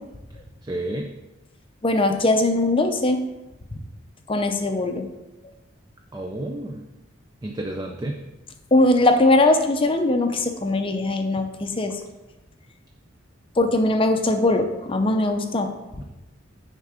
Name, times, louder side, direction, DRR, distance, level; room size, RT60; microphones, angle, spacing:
voice 1, 0.7-1.1 6.1-6.8 7.4-8.2, right 1 dB, 20° right, 3 dB, 0.4 m, -30 dB
voice 2, 1.8-3.2 4.3-5.1 8.7-11.9 13.6-15.7, left 2 dB, 25° left, 6 dB, 0.6 m, -20 dB
9.2 x 3.7 x 4.9 m, 1.0 s
head